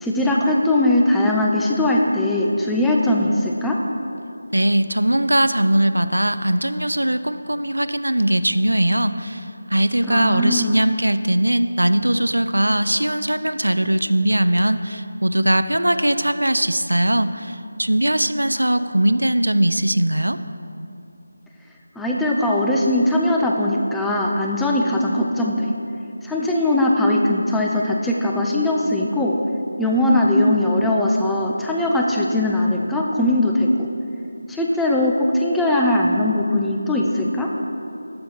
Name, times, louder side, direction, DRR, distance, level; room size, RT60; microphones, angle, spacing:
voice 1, 0.0-3.8 10.0-10.8 22.0-25.7 26.2-29.3 29.8-33.9 34.5-37.5, left 1 dB, 5° left, -2 dB, 0.3 m, -20 dB
voice 2, 4.5-20.4, right 1 dB, 85° right, 11 dB, 0.3 m, -20 dB
6.7 x 6.4 x 4.3 m, 2.7 s
figure-of-eight pair, 165°, 0 cm